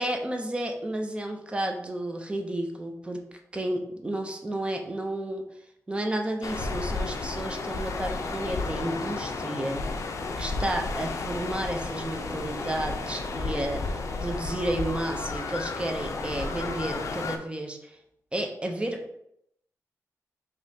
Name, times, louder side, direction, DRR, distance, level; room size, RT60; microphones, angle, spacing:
voice 1, 0.0-3.2 3.5-5.4 5.9-9.8 10.4-18.0 18.3-19.0, right 1 dB, 20° right, 3 dB, 0.5 m, -32 dB
sound 1, 6.4-17.4, left 3 dB, 60° left, 0.5 m, -32 dB
5.1 x 2.8 x 2.7 m, 0.74 s
wide cardioid pair, 125°, 6 cm